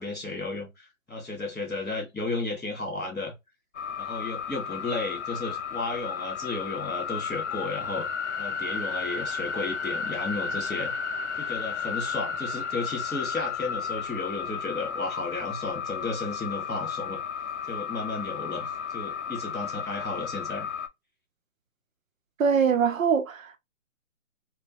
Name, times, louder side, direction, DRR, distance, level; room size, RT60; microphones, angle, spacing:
voice 1, 0.0-3.3 4.0-8.1 8.4-10.9 11.4-17.2 17.7-20.7, left 3 dB, ahead, 0.6 m, -33 dB
sound 1, 3.7-20.9, left 6 dB, 60° left, 0.5 m, -33 dB
voice 2, 22.4-23.6, right 6 dB, 75° right, 0.7 m, -23 dB
2.9 x 2.2 x 2.7 m
hypercardioid pair, 160°, 40 cm